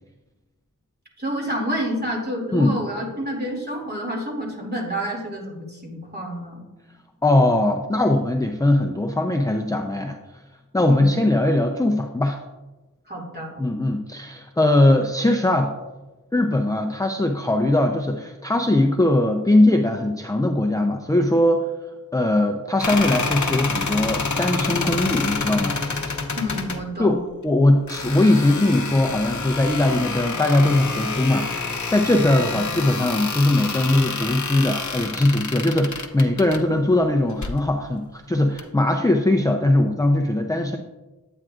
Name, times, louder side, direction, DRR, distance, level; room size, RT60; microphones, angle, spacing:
voice 1, 1.2-6.6 10.8-11.1 13.1-13.6 26.4-27.2 32.3-32.7, equal, 25° right, -1 dB, 2.5 m, -29 dB
voice 2, 7.2-10.4 10.7-12.4 13.6-15.7 16.3-21.7 22.1-25.8 27.0-40.8, left 1 dB, 10° left, 3 dB, 0.5 m, -20 dB
sound 1, 22.8-26.8 27.9-36.6 37.3-37.6 38.6-38.7, left 4 dB, 55° left, 0.8 m, -28 dB
9.0 x 8.8 x 2.5 m, 1.1 s
wide cardioid pair, 55°, 36 cm